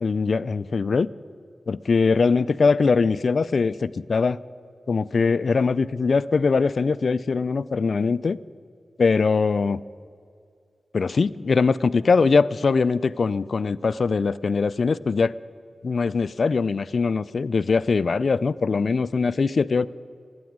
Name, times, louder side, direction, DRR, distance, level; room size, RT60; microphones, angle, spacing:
voice 1, 0.0-1.1 1.7-4.4 4.9-8.4 9.0-9.8 10.9-15.3 15.8-19.9, left 4 dB, 65° left, 17 dB, 0.3 m, -22 dB
13.5 x 9.5 x 9.4 m, 2.3 s
cardioid pair, 65°, 0 cm